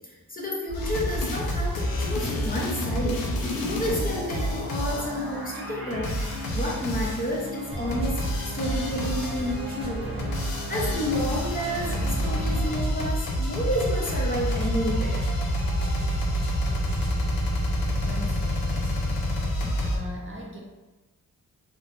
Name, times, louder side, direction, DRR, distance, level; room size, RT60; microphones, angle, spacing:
voice 1, 0.0-3.2 3.6-6.1 6.5-15.2 19.6-19.7, equal, 25° left, -3 dB, 0.5 m, -30 dB
sound 1, 0.7-5.2 5.9-7.4 7.9-9.6 10.1-20.0, equal, 85° left, 0.6 m, -28 dB
sound 2, 0.7-12.8, equal, 85° right, 1.0 m, -37 dB
sound 3, 7.7-17.3, right 1 dB, 15° right, 0.9 m, -36 dB
voice 2, 18.0-19.3 19.8-20.6, right 1 dB, 35° right, -2 dB, 0.4 m, -40 dB
3.1 x 2.0 x 2.5 m, 1.2 s
wide cardioid pair, 110°, 35 cm